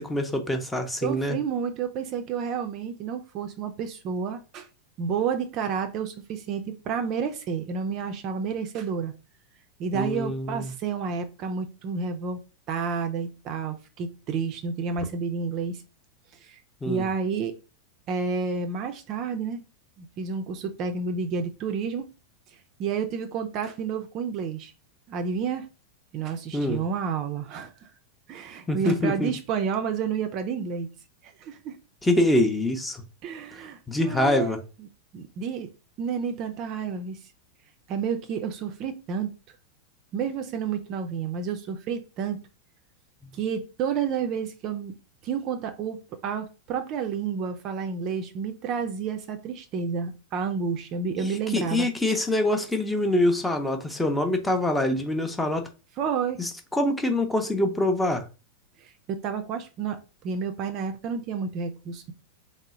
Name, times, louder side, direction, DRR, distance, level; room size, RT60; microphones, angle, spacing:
voice 1, 0.0-1.4 9.9-10.7 16.8-17.1 26.5-26.8 28.7-29.3 32.0-33.0 33.9-34.6 51.2-55.7 56.4-58.2, left 1 dB, 5° left, 0.6 m, -25 dB
voice 2, 1.0-4.7 5.0-9.1 9.8-12.4 12.7-15.8 16.4-16.6 16.9-17.5 18.1-19.6 20.0-22.0 22.8-24.7 25.1-25.7 26.1-27.7 28.3-30.9 31.2-31.8 33.2-34.9 35.1-35.7 36.0-37.2 37.9-39.3 40.1-42.4 43.3-44.9 45.2-51.9 56.0-56.4 58.8-60.0 60.2-62.1, right 6 dB, 35° right, 0.4 m, -30 dB
3.7 x 2.0 x 3.5 m
figure-of-eight pair, 90°, 0 cm